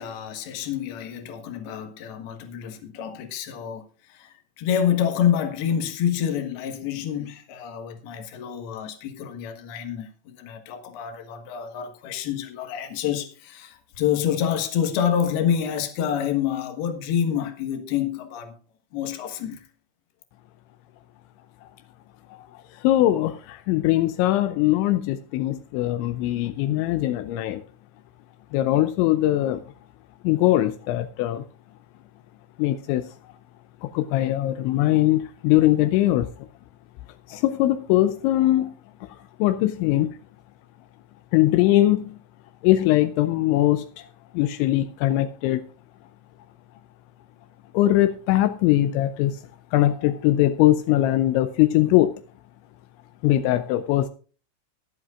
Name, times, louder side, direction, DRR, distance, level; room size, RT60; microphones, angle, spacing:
voice 1, 0.0-3.8 4.1-18.5 18.9-19.7, left 9 dB, 65° left, 3.2 m, -27 dB
voice 2, 22.8-27.6 28.5-29.6 30.2-31.4 32.6-33.0 33.8-36.3 37.3-38.7 39.4-40.1 41.3-42.0 42.6-43.8 44.3-45.6 47.7-49.4 49.7-52.2 53.2-54.1, left 15 dB, 85° left, 3.0 m, -21 dB
22.5 x 7.8 x 2.4 m
omnidirectional pair, 5.3 m